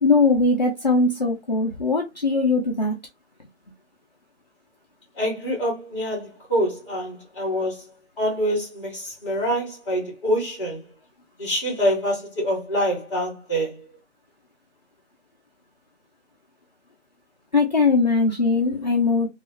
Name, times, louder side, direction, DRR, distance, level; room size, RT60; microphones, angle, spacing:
voice 1, 0.0-3.0 17.5-19.3, left 3 dB, 40° left, 0.4 m, -20 dB
voice 2, 5.2-7.8 8.2-10.8 11.4-13.7, equal, 5° left, 1.1 m, -25 dB
3.0 x 2.4 x 2.8 m
hypercardioid pair, 170°, 35 cm